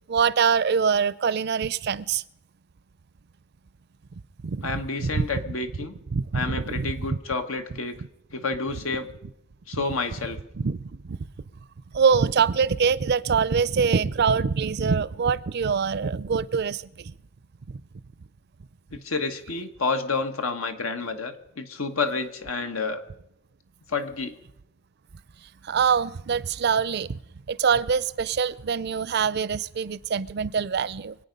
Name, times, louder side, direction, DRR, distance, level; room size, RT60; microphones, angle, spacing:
voice 1, 0.1-2.2 4.4-4.7 5.0-5.3 6.1-6.9 10.6-11.2 11.9-17.1 17.7-17.8 25.6-27.2 27.5-31.2, right 6 dB, 55° right, 0.4 m, -24 dB
voice 2, 4.6-5.9 6.3-8.0 8.3-9.1 9.7-10.4 18.9-23.0 23.9-24.4, left 4 dB, 90° left, 1.4 m, -29 dB
25.0 x 8.8 x 5.3 m
head